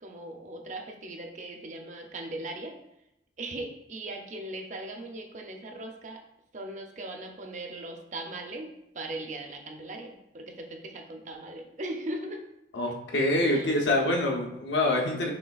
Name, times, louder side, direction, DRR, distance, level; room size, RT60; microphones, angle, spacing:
voice 1, 0.0-2.7 3.4-6.2 6.5-8.7 8.9-12.4 13.5-13.7, right 1 dB, 45° right, 3 dB, 0.5 m, -39 dB
voice 2, 12.7-15.3, left 1 dB, 90° left, 0 dB, 0.8 m, -25 dB
5.4 x 3.2 x 2.3 m, 0.83 s
head